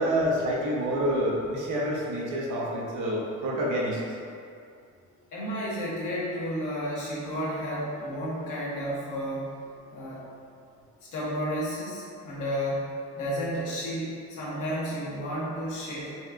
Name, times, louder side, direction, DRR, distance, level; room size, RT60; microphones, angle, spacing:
voice 1, 0.0-4.0, equal, 80° right, -4 dB, 0.7 m, -27 dB
voice 2, 5.3-9.4 9.9-10.2 11.1-12.9 13.1-16.1, equal, 80° left, -7 dB, 1.0 m, -32 dB
4.0 x 2.2 x 2.4 m, 2.3 s
cardioid pair, 90°, 30 cm